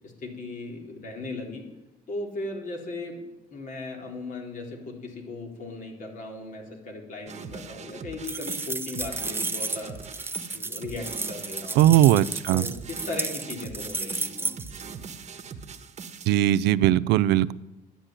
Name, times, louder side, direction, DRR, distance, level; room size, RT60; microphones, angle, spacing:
voice 1, 0.0-1.6 2.1-3.2 3.5-10.0 10.5-11.9 12.5-14.5, left 2 dB, 50° left, 1 dB, 4.0 m, -37 dB
sound 1, 7.3-16.3, right 5 dB, 40° right, 1.4 m, -41 dB
sound 2, 8.3-14.8, right 3 dB, 15° right, 0.7 m, -32 dB
voice 2, 11.8-12.6 16.3-17.5, right 13 dB, 85° right, 16 dB, 0.5 m, -19 dB
11.5 x 11.5 x 8.9 m, 1.0 s
cardioid pair, 110°, 17 cm